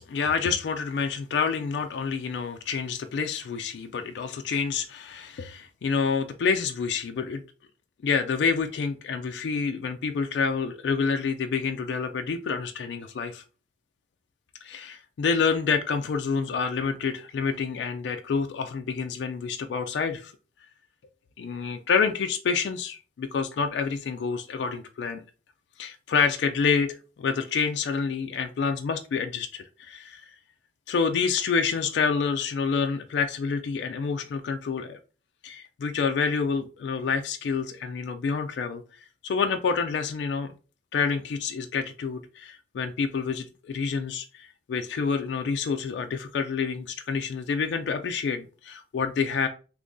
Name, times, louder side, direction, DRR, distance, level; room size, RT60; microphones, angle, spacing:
voice 1, 0.1-7.4 8.0-13.4 14.6-20.3 21.4-25.2 25.8-30.3 30.9-35.0 35.4-38.8 39.2-40.5 40.9-49.5, left 5 dB, 65° left, 0.3 m, -28 dB
3.0 x 2.5 x 3.6 m
head